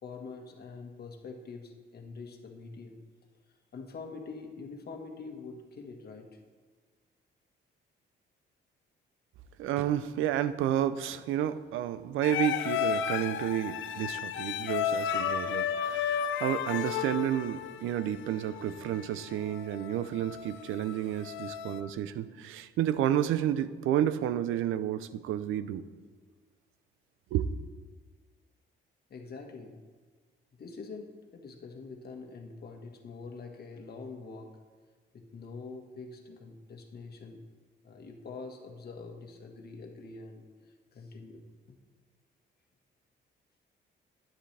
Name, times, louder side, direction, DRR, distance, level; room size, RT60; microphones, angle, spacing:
voice 1, 0.0-3.0 3.7-6.4 29.1-29.8 30.6-34.6 35.1-37.5 37.8-40.5 40.9-41.8, left 4 dB, 50° left, 3 dB, 1.6 m, -45 dB
voice 2, 9.6-25.8 27.3-27.5, right 11 dB, 90° right, 13 dB, 0.6 m, -31 dB
sound 1, 12.2-21.8, left 9 dB, 75° left, 0.6 m, -33 dB
13.0 x 10.0 x 3.4 m, 1.5 s
cardioid pair, 90°, 20 cm